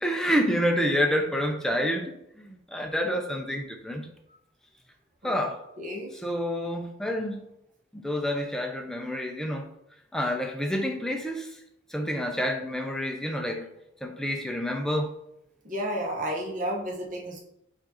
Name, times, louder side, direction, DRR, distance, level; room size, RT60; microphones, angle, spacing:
voice 1, 0.0-4.1 5.2-5.6 6.1-7.5 7.9-9.7 10.1-11.6 11.9-13.7 14.0-15.1, equal, 5° left, 2 dB, 0.5 m, -28 dB
voice 2, 5.8-6.1 15.6-17.4, equal, 45° right, 0 dB, 1.0 m, -31 dB
4.8 x 2.6 x 4.2 m, 0.80 s
head